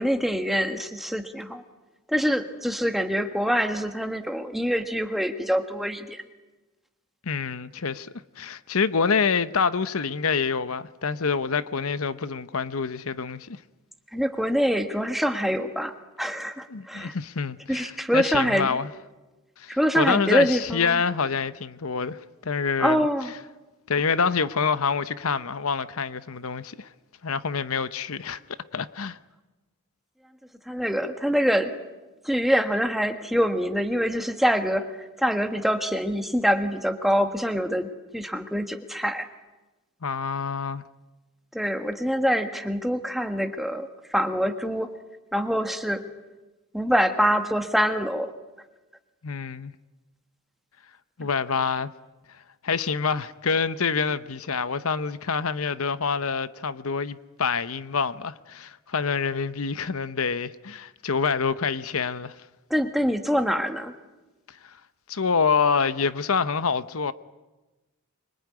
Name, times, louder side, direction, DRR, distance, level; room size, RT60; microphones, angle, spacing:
voice 1, 0.0-1.6 2.1-6.2 14.1-17.1 17.7-18.8 19.7-21.0 22.8-23.3 30.7-31.7 32.2-34.9 35.2-37.9 38.1-39.3 41.5-44.9 45.3-46.0 46.7-48.3 62.7-63.9, equal, ahead, 1.6 m, -25 dB
voice 2, 7.3-8.1 8.4-13.6 16.7-18.9 19.6-23.1 23.9-26.9 27.2-28.4 28.7-29.2 40.0-40.8 49.2-49.7 51.2-51.9 52.6-62.3 64.6-64.7 65.1-67.1, left 5 dB, 75° left, 0.9 m, -26 dB
25.0 x 24.0 x 9.6 m
head